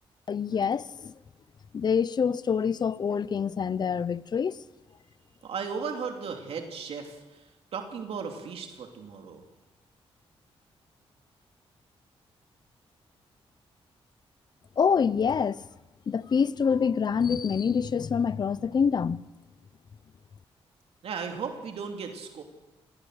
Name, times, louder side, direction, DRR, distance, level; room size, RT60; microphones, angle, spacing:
voice 1, 0.3-1.1 1.7-4.6 14.8-15.6 16.1-19.2, left 6 dB, 45° left, 0.7 m, -26 dB
voice 2, 5.4-9.4 21.0-22.4, right 6 dB, 75° right, 2.8 m, -36 dB
27.5 x 19.0 x 6.5 m
cardioid pair, 115°, 10 cm